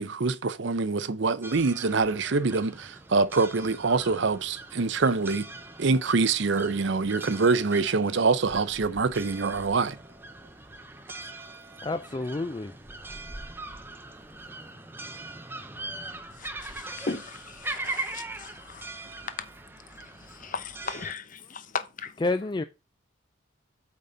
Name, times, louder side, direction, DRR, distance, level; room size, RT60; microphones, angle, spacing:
voice 1, 0.0-5.5 5.8-10.0, right 4 dB, 60° right, 0.6 m, -25 dB
sound 1, 1.4-21.1, right 2 dB, 10° right, 0.7 m, -41 dB
voice 2, 11.8-12.7 21.4-21.5 22.2-22.6, left 2 dB, 20° left, 0.3 m, -29 dB
voice 3, 16.6-18.9 20.4-22.1, left 4 dB, 40° left, 0.8 m, -37 dB
8.6 x 4.0 x 5.4 m
head